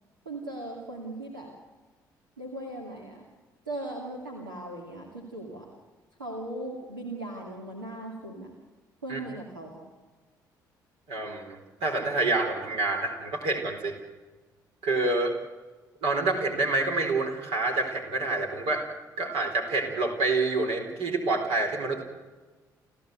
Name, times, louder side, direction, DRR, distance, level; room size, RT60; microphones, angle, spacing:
voice 1, 0.3-1.5 2.4-3.2 3.7-5.7 6.2-8.5 9.0-9.8, right 1 dB, 85° right, -1 dB, 2.5 m, -38 dB
voice 2, 11.1-14.0 14.8-15.3 16.0-18.8 19.2-22.0, right 3 dB, 60° right, 2 dB, 4.2 m, -27 dB
29.5 x 14.0 x 8.0 m, 1.3 s
figure-of-eight pair, 45°, 11 cm